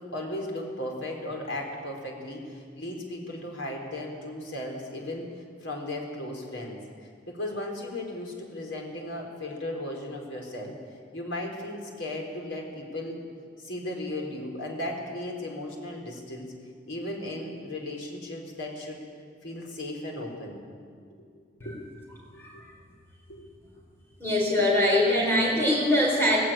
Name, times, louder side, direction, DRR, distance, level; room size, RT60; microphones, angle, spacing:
voice 1, 0.0-5.3 5.6-6.8 7.3-10.7 11.1-13.2 13.6-16.5 16.9-19.0 19.4-20.6 21.6-21.8 22.5-22.6 23.3-23.5, left 1 dB, 80° left, 0 dB, 4.3 m, -36 dB
voice 2, 24.2-26.4, left 1 dB, 10° left, -3 dB, 4.5 m, -23 dB
18.5 x 16.0 x 8.9 m, 2.1 s
head